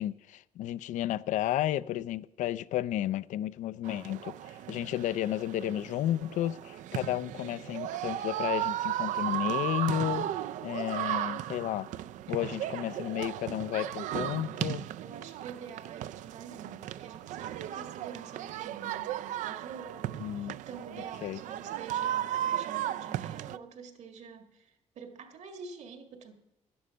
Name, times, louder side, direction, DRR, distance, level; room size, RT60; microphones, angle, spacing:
voice 1, 0.0-10.3 10.6-11.9 12.3-14.9 20.2-20.6 21.2-21.4, left 12 dB, 90° left, 0.4 m, -32 dB
sound 1, 3.8-23.6, right 12 dB, 90° right, 0.4 m, -35 dB
voice 2, 12.3-12.8 15.0-26.3, right 6 dB, 65° right, 1.7 m, -47 dB
11.5 x 11.0 x 5.6 m
cardioid pair, 140°, 12 cm